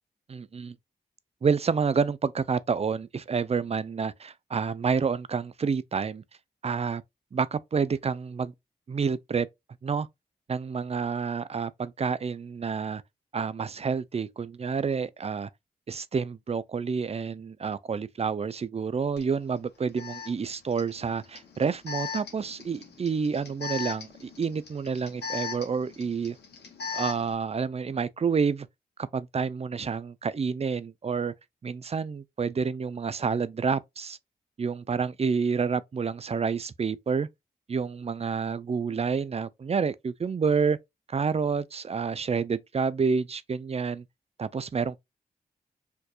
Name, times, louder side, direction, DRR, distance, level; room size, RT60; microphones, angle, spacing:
voice 1, 0.3-0.7 1.4-6.2 6.6-7.0 7.3-8.5 8.9-9.5 9.8-10.1 10.5-13.0 13.3-15.5 15.9-26.4 26.9-28.7 29.0-31.3 31.6-34.2 34.6-37.3 37.7-40.8 41.1-44.0 44.4-45.0, right 5 dB, 40° right, 0.5 m, -29 dB
Alarm, 19.2-19.3 20.0-27.3, left 6 dB, 90° left, 1.4 m, -38 dB
4.4 x 2.7 x 2.4 m
cardioid pair, 45°, 17 cm